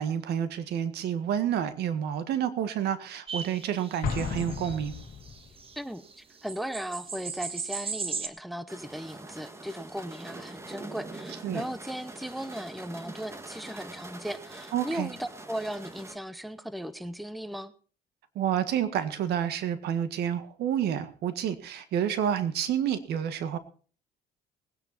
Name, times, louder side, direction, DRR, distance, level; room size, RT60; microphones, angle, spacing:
voice 1, 0.0-4.9 11.4-11.6 14.7-15.1 18.3-23.6, right 9 dB, 75° right, 11 dB, 1.7 m, -29 dB
sound 1, 3.3-5.8 6.1-6.2 6.4-8.3, right 5 dB, 35° right, 1.4 m, -37 dB
Explosion, 4.0-5.6, left 6 dB, 60° left, 2.0 m, -34 dB
voice 2, 5.8-17.7, equal, ahead, 14 dB, 0.9 m, -37 dB
sound 2, 8.7-16.2, right 2 dB, 15° right, 1.8 m, -44 dB
19.5 x 9.8 x 4.2 m, 0.41 s
cardioid pair, 110°, 17 cm